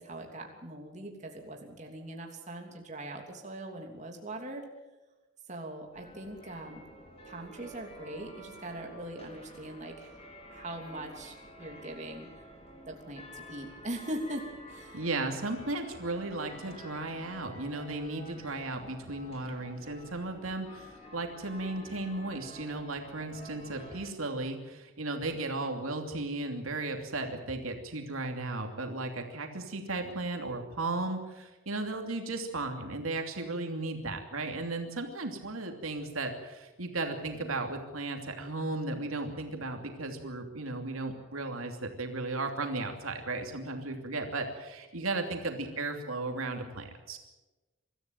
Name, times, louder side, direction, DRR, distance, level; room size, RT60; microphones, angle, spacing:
voice 1, 0.0-4.6 5.5-6.8 7.2-12.4 12.8-15.1, right 1 dB, 35° right, 2 dB, 3.0 m, -41 dB
sound 1, 5.9-24.1, equal, 30° left, 4.0 m, -50 dB
voice 2, 14.9-47.2, right 2 dB, 90° right, 4 dB, 2.9 m, -35 dB
24.0 x 14.0 x 9.2 m, 1.1 s
head